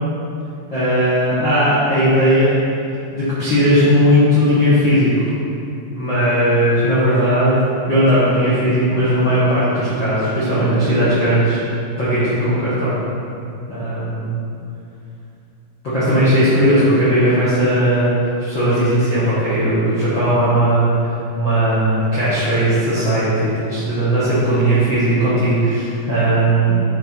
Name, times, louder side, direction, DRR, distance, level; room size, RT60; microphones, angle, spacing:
voice 1, 0.7-2.6 3.1-5.3 5.9-7.6 7.9-11.6 12.0-13.0 13.7-14.4 15.8-20.9 21.3-26.7, equal, 70° left, -11 dB, 1.1 m, -17 dB
8.8 x 4.7 x 4.5 m, 2.6 s
omnidirectional pair, 4.9 m